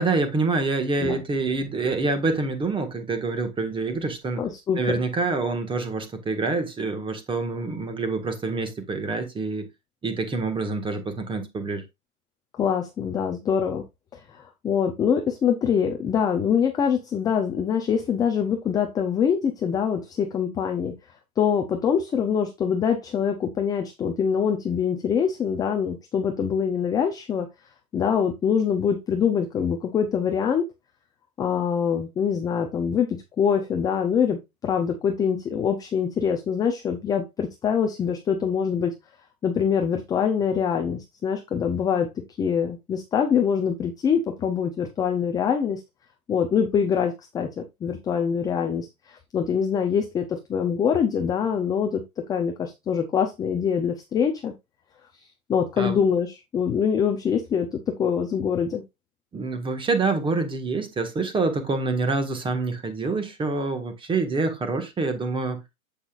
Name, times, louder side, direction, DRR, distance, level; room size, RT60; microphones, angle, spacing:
voice 1, 0.0-4.4 4.8-9.7 10.0-11.8 55.8-56.0 59.3-65.6, right 3 dB, 10° right, 1.6 m, -26 dB
voice 2, 4.4-5.0 12.6-13.8 14.1-20.9 21.4-27.5 27.9-30.6 31.4-38.9 39.4-42.1 42.4-45.8 46.3-52.0 52.3-54.5 55.5-58.8, left 7 dB, 10° left, 0.5 m, -24 dB
8.2 x 8.0 x 2.5 m
hypercardioid pair, 140°, 45 cm